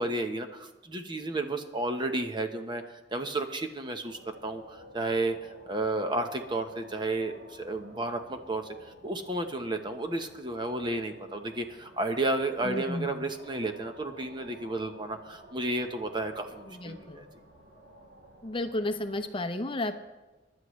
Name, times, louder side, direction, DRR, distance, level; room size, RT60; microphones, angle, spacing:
voice 1, 0.0-5.4 5.7-8.7 9.0-17.3, right 2 dB, 25° right, 6 dB, 0.9 m, -32 dB
sound 1, 4.0-19.3, right 1 dB, 60° right, 6.2 m, -53 dB
voice 2, 12.6-13.2 16.7-17.2 18.4-19.9, left 1 dB, 30° left, 7 dB, 0.8 m, -33 dB
24.0 x 11.5 x 3.2 m, 1.1 s
head